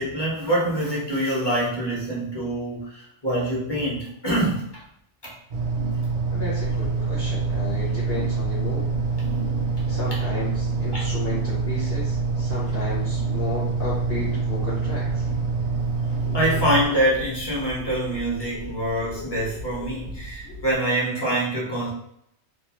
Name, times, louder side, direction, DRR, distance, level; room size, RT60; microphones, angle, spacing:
voice 1, 0.0-4.8 5.2-5.3 10.9-11.0 16.3-21.9, right 1 dB, 25° left, -6 dB, 0.8 m, -25 dB
sound 1, 5.5-16.9, right 4 dB, 60° right, 0.6 m, -26 dB
voice 2, 6.3-8.8 9.9-15.3, left 3 dB, 55° left, -7 dB, 0.9 m, -33 dB
sound 2, 6.6-20.7, left 1 dB, 80° left, 0.9 m, -39 dB
2.3 x 2.2 x 3.0 m, 0.74 s
omnidirectional pair, 1.2 m